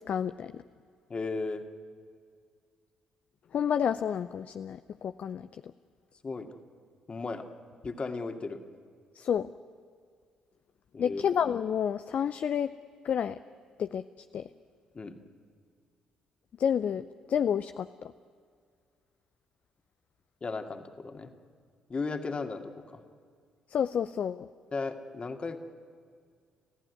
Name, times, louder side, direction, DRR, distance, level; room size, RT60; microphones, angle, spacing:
voice 1, 0.1-0.6 3.5-5.5 9.2-9.5 11.0-12.7 13.0-13.4 13.8-14.0 14.3-14.4 16.6-18.1 23.7-24.5, left 8 dB, 55° left, 12 dB, 0.5 m, -29 dB
voice 2, 1.1-1.6 6.2-6.6 7.1-7.4 7.8-8.6 10.9-11.2 14.9-15.2 20.4-21.3 21.9-23.0 24.7-25.6, left 3 dB, 35° left, 6 dB, 2.3 m, -35 dB
29.0 x 15.0 x 9.6 m, 2.1 s
hypercardioid pair, 45°, 3 cm